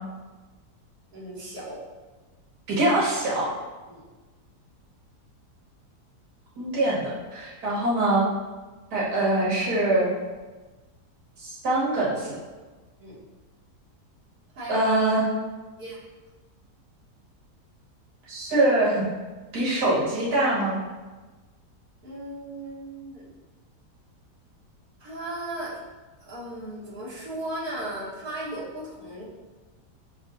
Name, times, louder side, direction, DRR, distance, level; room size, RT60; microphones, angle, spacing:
voice 1, 1.1-1.8 3.9-4.0 13.0-13.2 14.5-14.8 15.8-16.0 22.0-23.2 25.0-25.8 26.2-29.2, right 1 dB, 65° right, -11 dB, 1.8 m, -36 dB
voice 2, 2.7-3.5 6.6-8.3 8.9-10.1 11.4-12.4 14.7-15.3 18.3-19.0 19.5-20.8, right 2 dB, 80° right, -7 dB, 1.9 m, -23 dB
6.2 x 2.7 x 2.6 m, 1.2 s
omnidirectional pair, 1.7 m